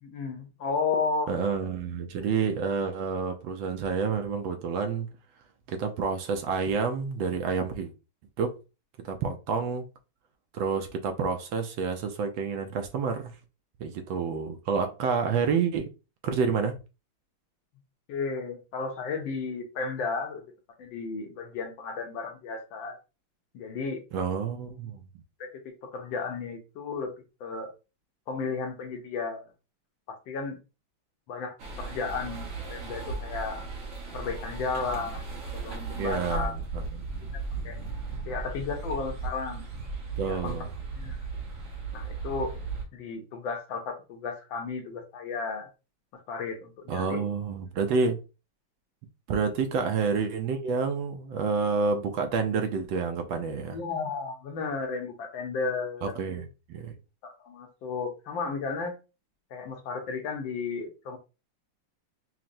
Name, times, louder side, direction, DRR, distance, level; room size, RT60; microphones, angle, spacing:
voice 1, 0.0-1.4 18.1-20.4 20.8-23.0 23.5-24.0 25.4-27.1 27.4-27.7 28.3-29.5 30.1-30.6 31.3-33.7 34.1-35.2 35.5-36.6 37.3-37.8 38.3-39.6 40.2-40.5 40.9-41.3 41.9-42.5 42.9-45.7 46.3-47.2 49.7-49.8 53.7-56.2 57.2-58.9 59.5-61.2, left 4 dB, 70° left, 1.4 m, -33 dB
voice 2, 1.3-5.1 5.7-7.9 8.4-8.5 9.0-9.9 10.5-13.3 13.8-15.9 16.2-16.8 24.1-25.0 36.0-37.0 40.2-40.7 46.9-48.2 49.3-53.8 56.0-56.9, right 5 dB, 75° right, 1.2 m, -29 dB
sound 1, 31.6-42.9, right 4 dB, 50° right, 1.1 m, -36 dB
5.7 x 2.1 x 2.5 m
omnidirectional pair, 2.3 m